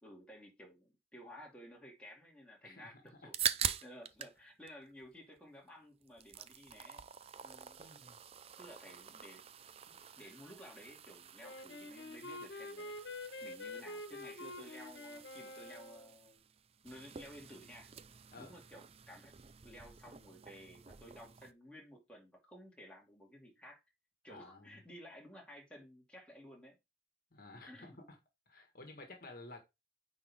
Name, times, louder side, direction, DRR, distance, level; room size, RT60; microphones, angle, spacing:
voice 1, 0.0-7.0 7.4-7.8 8.6-9.4 9.9-12.9 13.4-16.5 16.8-17.9 18.4-19.3 19.6-23.8 24.2-26.8 27.7-28.0, equal, 5° left, 2.3 m, -54 dB
sound 1, 3.1-4.4 4.7-5.7 6.0-21.5, right 9 dB, 35° right, 0.4 m, -45 dB
voice 2, 7.8-8.2 18.3-18.6 24.3-24.8 27.3-28.2 28.5-29.6, left 2 dB, 50° left, 1.6 m, -53 dB
Wind instrument woodwind instrument, 11.4-16.2, left 2 dB, 75° left, 1.4 m, -47 dB
9.5 x 4.3 x 3.6 m
head